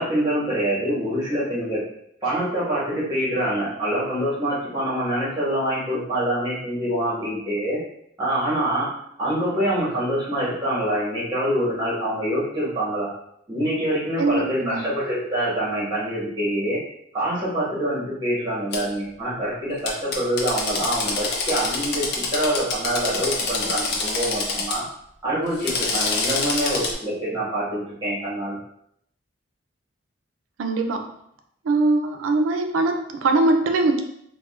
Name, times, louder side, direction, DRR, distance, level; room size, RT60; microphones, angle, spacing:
voice 1, 0.0-1.8 2.2-7.8 8.2-8.9 9.2-13.1 13.5-16.8 17.1-24.8 25.2-28.6, right 1 dB, 20° right, -8 dB, 1.3 m, -25 dB
voice 2, 14.2-14.8 30.6-31.0 31.6-34.0, right 2 dB, 90° right, 5 dB, 0.4 m, -21 dB
Drill, 18.7-18.8 19.9-24.8 25.5-26.9, left 3 dB, 55° left, 0.5 m, -26 dB
3.5 x 2.2 x 2.3 m, 0.72 s
head